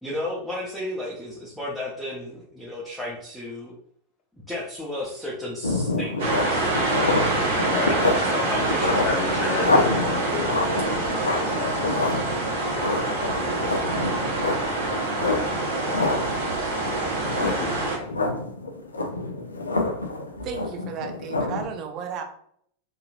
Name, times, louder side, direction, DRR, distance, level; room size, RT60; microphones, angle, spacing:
voice 1, 0.0-3.7 4.5-7.6 7.8-9.8, left 1 dB, ahead, -6 dB, 0.8 m, -34 dB
sound 1, 5.6-21.6, left 2 dB, 90° left, 0.4 m, -28 dB
sound 2, 6.2-18.0, right 2 dB, 65° right, 1.1 m, -26 dB
voice 2, 7.6-8.1 8.9-12.0 13.5-14.0 17.4-17.8, left 5 dB, 45° left, 4 dB, 0.6 m, -32 dB
voice 3, 20.4-22.2, right 6 dB, 45° right, 4 dB, 0.6 m, -34 dB
2.9 x 2.7 x 2.4 m, 0.66 s
hypercardioid pair, 90°, 0 cm